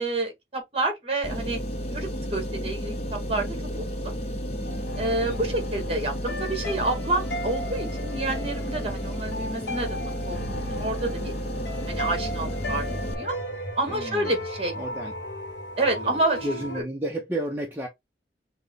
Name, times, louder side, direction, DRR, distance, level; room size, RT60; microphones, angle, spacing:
voice 1, 0.0-1.6 1.9-4.1 5.0-11.3 11.9-13.3 13.8-14.8 15.8-16.4, right 2 dB, 35° right, 1.5 m, -29 dB
sound 1, 1.2-13.1, equal, 35° left, 0.7 m, -32 dB
sound 2, 4.7-16.8, left 1 dB, 85° left, 1.1 m, -36 dB
voice 2, 5.2-5.6 13.9-14.3 14.8-15.1 15.9-17.9, right 1 dB, 10° right, 0.7 m, -32 dB
5.8 x 2.2 x 3.5 m
head